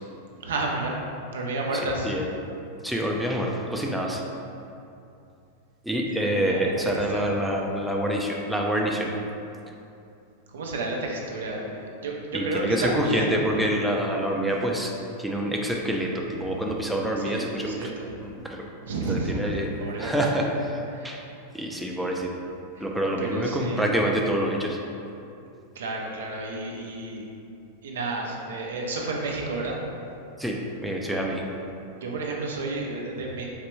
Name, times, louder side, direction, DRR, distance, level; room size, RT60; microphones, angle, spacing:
voice 1, 0.4-1.0 1.3-2.1 6.3-7.5 10.5-13.5 16.4-16.6 17.2-18.2 18.8-20.4 20.9-21.3 22.7-22.9 23.2-23.9 25.8-27.2 27.8-29.8 32.0-33.5, right 2 dB, 80° right, -1 dB, 0.5 m, -31 dB
voice 2, 2.8-4.2 5.8-9.1 12.3-14.9 15.2-17.9 18.2-18.6 19.1-19.7 20.0-20.8 21.0-21.2 21.5-22.3 22.8-24.8 30.4-31.6, equal, ahead, -1 dB, 0.4 m, -26 dB
4.0 x 2.2 x 3.0 m, 2.7 s
hypercardioid pair, 110°, 0 cm